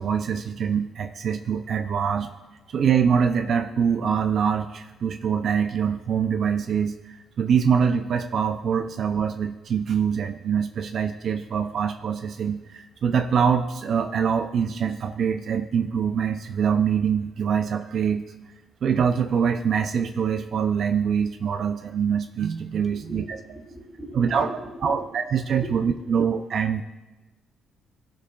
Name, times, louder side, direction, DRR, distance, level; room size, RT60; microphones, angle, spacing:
voice 1, 0.0-2.3 2.7-6.9 7.4-18.2 18.8-23.4 24.1-24.5 24.8-26.8, right 7 dB, 60° right, 7 dB, 0.5 m, -24 dB
voice 2, 22.8-25.0 25.6-26.0, equal, 10° left, -1 dB, 2.5 m, -38 dB
18.0 x 7.0 x 2.4 m, 1.1 s
cardioid pair, 90°, 0 cm